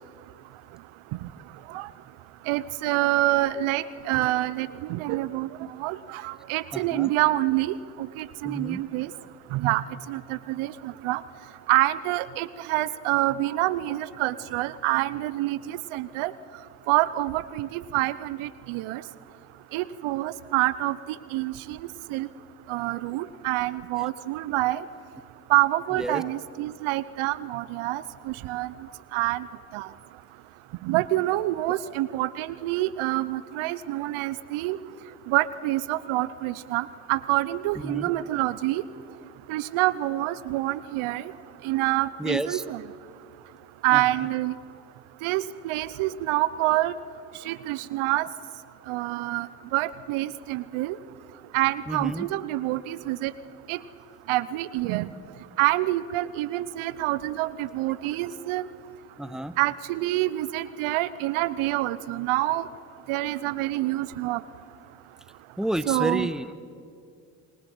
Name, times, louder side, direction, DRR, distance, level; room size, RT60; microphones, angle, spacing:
voice 1, 2.5-5.5 5.8-9.1 9.5-11.2 11.7-16.3 16.9-19.0 19.7-21.0 21.3-21.8 22.1-22.3 22.7-24.8 25.5-28.7 29.1-29.5 29.7-29.9 30.8-34.8 35.3-38.8 39.5-41.2 41.6-42.8 43.8-44.5 45.2-46.9 47.5-48.3 48.9-49.5 49.7-51.0 51.5-53.3 53.7-53.8 54.3-55.1 55.6-58.7 59.6-62.6 63.1-64.4 65.9-66.3, right 16 dB, 75° right, 18 dB, 0.9 m, -27 dB
voice 2, 6.7-7.1 8.4-8.8 25.9-26.2 31.8-31.9 37.8-38.1 42.2-42.6 43.9-44.3 51.9-52.3 59.2-59.6 65.6-66.5, right 1 dB, ahead, 14 dB, 1.3 m, -31 dB
28.0 x 21.5 x 7.8 m, 2.4 s
hypercardioid pair, 50°, 49 cm